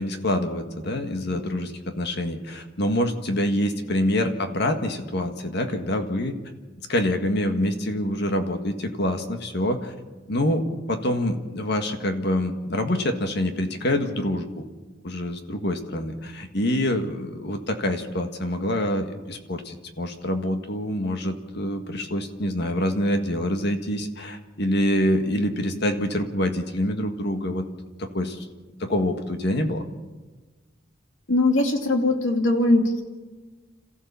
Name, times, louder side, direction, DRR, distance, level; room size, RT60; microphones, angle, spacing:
voice 1, 0.0-6.4 6.9-9.9 10.3-14.6 15.0-27.6 28.0-28.5 28.8-29.8, left 1 dB, 60° left, 6 dB, 1.8 m, -26 dB
voice 2, 31.3-33.0, left 2 dB, 80° left, 4 dB, 2.5 m, -20 dB
27.5 x 14.5 x 7.1 m, 1.3 s
head